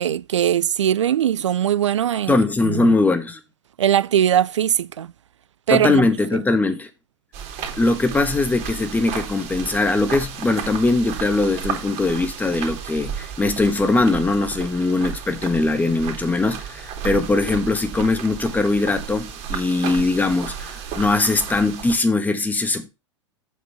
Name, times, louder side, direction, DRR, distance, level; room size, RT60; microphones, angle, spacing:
voice 1, 0.0-2.4 2.6-3.0 3.8-5.1 5.7-6.0, right 10 dB, 75° right, 0.4 m, -20 dB
voice 2, 2.3-3.4 5.7-6.9 7.8-22.9, left 3 dB, 10° left, 1.5 m, -21 dB
sound 1, 7.3-22.0, right 7 dB, 40° right, 2.8 m, -33 dB
8.2 x 4.8 x 5.7 m
figure-of-eight pair, 95°, 16 cm